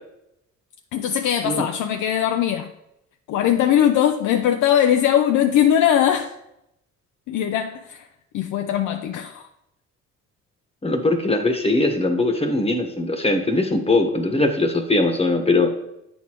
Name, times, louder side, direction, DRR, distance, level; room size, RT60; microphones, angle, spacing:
voice 1, 0.9-2.7 3.3-6.3 7.3-8.1 8.3-9.5, left 10 dB, 80° left, 0.5 m, -20 dB
voice 2, 10.8-15.7, left 2 dB, 20° left, 1.1 m, -20 dB
8.2 x 6.3 x 3.0 m
cardioid pair, 90°, 30 cm